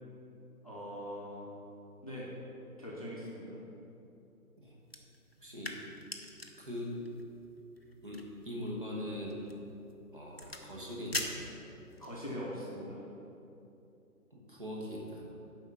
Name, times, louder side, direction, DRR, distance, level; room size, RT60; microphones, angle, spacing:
voice 1, 0.6-1.5 2.0-2.3 2.8-3.6 12.0-13.0, equal, 25° left, -6 dB, 0.9 m, -42 dB
sound 1, 4.8-12.2, left 1 dB, 40° left, 0.5 m, -45 dB
voice 2, 5.4-5.7 6.6-7.0 8.0-9.4 10.1-11.5 14.3-15.2, left 1 dB, 35° right, -4 dB, 1.3 m, -41 dB
6.9 x 5.5 x 7.0 m, 2.9 s
figure-of-eight pair, 175°, 47 cm